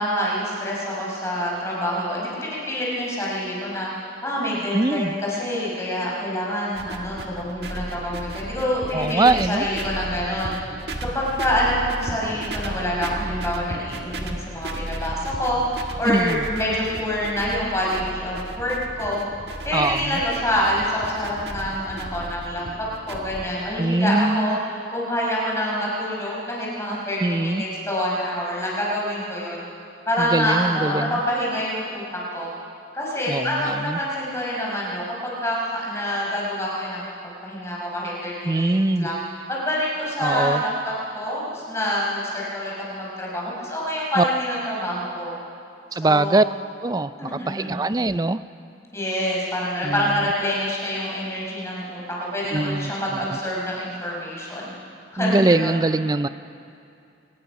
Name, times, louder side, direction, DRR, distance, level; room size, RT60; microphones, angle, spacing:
voice 1, 0.0-10.6 11.1-19.2 19.6-29.6 30.1-32.5 32.9-37.1 37.4-39.2 39.5-45.4 45.9-46.4 47.2-47.8 48.9-54.7 55.1-55.8, equal, 15° left, -4 dB, 5.3 m, -26 dB
voice 2, 4.7-5.2 8.9-9.7 16.1-16.4 19.7-20.2 23.8-24.6 27.2-27.7 30.2-31.2 33.3-34.0 38.4-39.1 40.2-40.6 44.2-44.3 45.9-46.4 46.8-48.4 49.8-50.0 52.5-53.2 55.2-56.3, right 2 dB, 20° right, 14 dB, 0.4 m, -22 dB
sound 1, 6.7-23.5, right 1 dB, 60° right, 1.7 m, -34 dB
23.5 x 19.5 x 6.1 m, 2.5 s
head